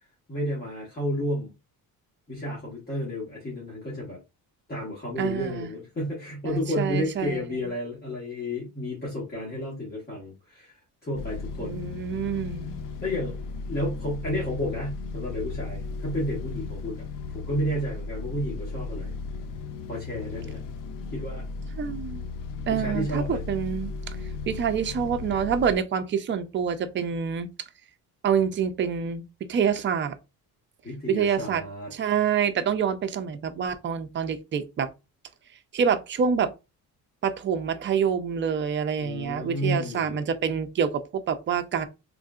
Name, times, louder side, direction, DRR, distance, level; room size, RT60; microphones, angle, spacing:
voice 1, 0.3-1.5 2.3-4.2 4.7-12.4 13.0-13.4 13.6-17.0 17.3-19.1 19.9-20.7 21.1-21.4 22.7-23.4 30.8-31.9 39.0-40.3, equal, 25° left, 1.3 m, -31 dB
voice 2, 5.2-5.7 6.4-7.7 11.6-12.8 21.8-22.2 22.7-24.2 24.5-27.5 28.2-30.2 31.1-31.6 31.9-34.9 35.7-36.5 37.2-41.9, right 7 dB, 30° right, 0.4 m, -27 dB
sound 1, 11.1-25.8, left 4 dB, 55° left, 0.5 m, -36 dB
3.6 x 2.5 x 2.3 m
cardioid pair, 135°, 38 cm